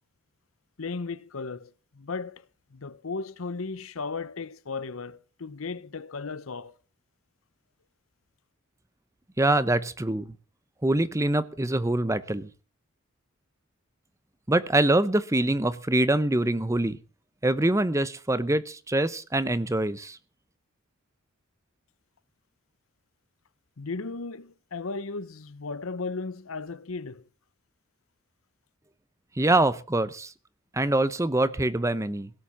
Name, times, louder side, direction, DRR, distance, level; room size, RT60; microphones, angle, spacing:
voice 1, 0.8-6.7 23.8-27.2, left 4 dB, 80° left, 0.8 m, -36 dB
voice 2, 9.4-10.3 10.8-12.5 14.5-17.0 17.4-20.2 29.4-30.3 30.7-32.3, right 1 dB, 15° right, 0.7 m, -24 dB
17.0 x 7.6 x 7.1 m
head